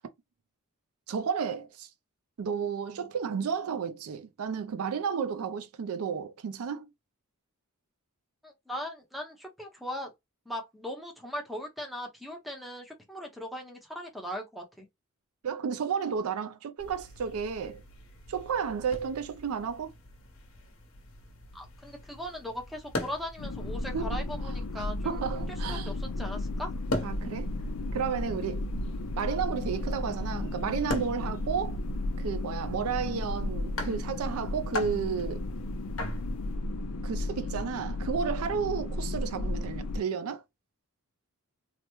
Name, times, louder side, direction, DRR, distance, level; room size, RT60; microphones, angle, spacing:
voice 1, 1.1-1.9 2.4-6.9 15.4-17.8 18.3-19.9 23.9-24.2 24.7-25.9 27.0-27.5 27.9-28.6 29.2-31.8 32.2-35.5 37.0-40.4, right 6 dB, 75° right, 0.4 m, -32 dB
voice 2, 8.4-10.1 10.5-14.9 21.5-25.4 25.7-26.7, equal, ahead, 0.6 m, -39 dB
sound 1, 16.8-36.5, left 1 dB, 60° left, 0.9 m, -42 dB
sound 2, 23.4-40.0, left 1 dB, 90° left, 0.5 m, -34 dB
3.3 x 2.1 x 2.9 m
head